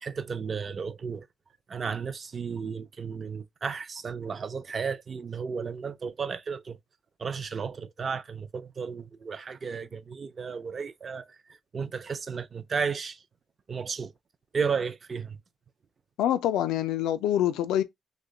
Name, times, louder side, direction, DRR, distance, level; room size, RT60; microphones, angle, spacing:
voice 1, 0.0-1.2 1.7-6.8 7.2-11.2 11.7-13.2 13.7-14.1 14.5-15.4, right 5 dB, 40° right, 0.4 m, -33 dB
voice 2, 16.2-17.8, left 11 dB, 90° left, 0.3 m, -25 dB
3.0 x 2.1 x 3.7 m
cardioid pair, 90°, 0 cm